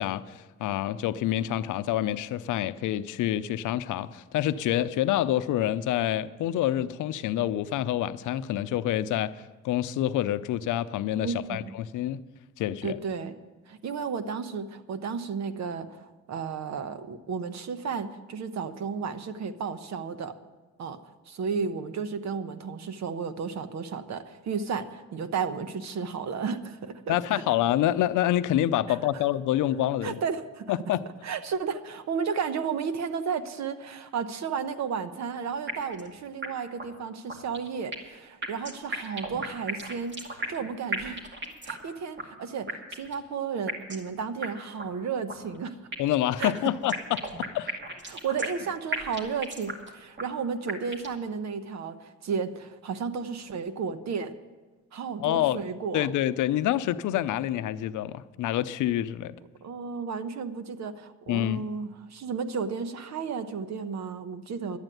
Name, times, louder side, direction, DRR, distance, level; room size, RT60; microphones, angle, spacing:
voice 1, 0.0-12.2 12.6-13.0 27.1-30.2 30.7-31.0 46.0-47.3 47.5-47.8 55.2-55.6 55.9-59.3 61.3-61.6, left 12 dB, 80° left, 13 dB, 0.6 m, -27 dB
voice 2, 11.2-11.7 12.8-13.3 13.7-20.3 20.8-21.0 21.3-27.4 28.9-29.2 30.0-30.7 31.2-41.2 41.6-45.8 46.4-46.5 48.1-54.3 54.9-56.1 59.6-64.8, right 6 dB, 65° right, 11 dB, 1.1 m, -33 dB
sound 1, 35.7-36.1 36.4-36.5 36.8-36.9 37.3-38.2 38.4-40.7 40.9-41.9 42.2-42.3 42.7-43.2 43.7-44.1 44.4-44.5 44.8-44.9 45.3-46.2 46.4-48.7 48.9-49.9 50.2-50.3 50.7-51.2, right 1 dB, 40° right, 2.3 m, -34 dB
11.5 x 8.9 x 9.2 m, 1.2 s
cardioid pair, 90°, 30 cm